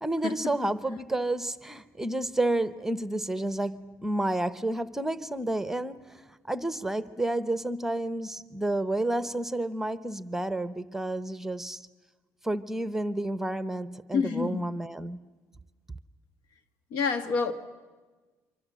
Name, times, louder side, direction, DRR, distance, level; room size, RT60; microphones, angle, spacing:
voice 1, 0.0-11.9 12.4-15.2, right 1 dB, 5° right, 0.8 m, -30 dB
voice 2, 14.1-14.6 16.9-17.5, left 5 dB, 90° left, 1.7 m, -28 dB
27.0 x 25.0 x 7.5 m
cardioid pair, 120°, 7 cm